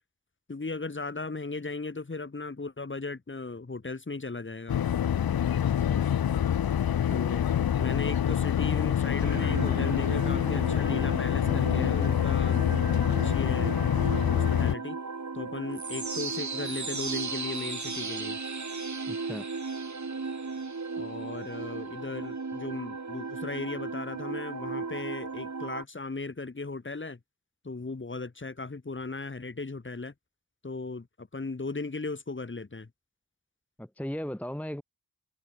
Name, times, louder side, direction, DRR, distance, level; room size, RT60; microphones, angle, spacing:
voice 1, 0.5-4.8 7.1-7.5 7.8-12.6 13.1-15.0 15.3-18.4 21.0-27.2 27.6-30.1 30.6-31.0 31.3-32.9, left 3 dB, 30° left, 2.2 m, -37 dB
sound 1, 4.7-14.7, left 9 dB, 70° left, 0.8 m, -26 dB
sound 2, 9.2-25.8, right 4 dB, 50° right, 5.7 m, -36 dB
voice 2, 19.1-19.4 33.8-34.8, equal, 5° left, 1.2 m, -36 dB
cardioid pair, 65°, 37 cm